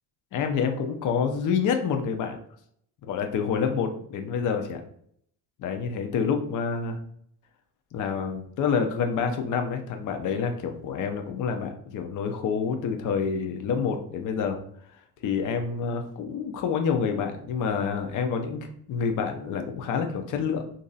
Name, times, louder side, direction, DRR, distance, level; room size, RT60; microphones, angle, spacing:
voice 1, 0.3-2.4 3.1-4.8 5.6-7.0 7.9-14.6 15.2-20.7, left 6 dB, 45° left, 5 dB, 0.6 m, -28 dB
2.9 x 2.6 x 4.0 m, 0.66 s
supercardioid pair, 90°, 44 cm